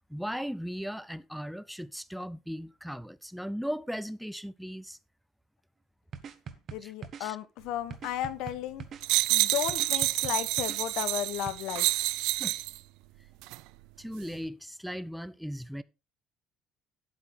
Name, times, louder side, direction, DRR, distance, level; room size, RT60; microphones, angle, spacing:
voice 1, 0.1-5.0 6.8-6.9 7.2-7.4 12.4-12.6 14.0-15.8, equal, ahead, 0.4 m, -37 dB
sound 1, 6.1-7.2 7.9-9.1 9.7-10.8 11.5-11.6, right 7 dB, 35° right, 0.9 m, -42 dB
voice 2, 6.7-8.8 9.3-12.1, left 12 dB, 70° left, 0.9 m, -34 dB
sound 2, 9.0-12.8 13.4-13.6, right 20 dB, 80° right, 0.4 m, -28 dB
10.0 x 8.2 x 3.5 m
cardioid pair, 170°, 0 cm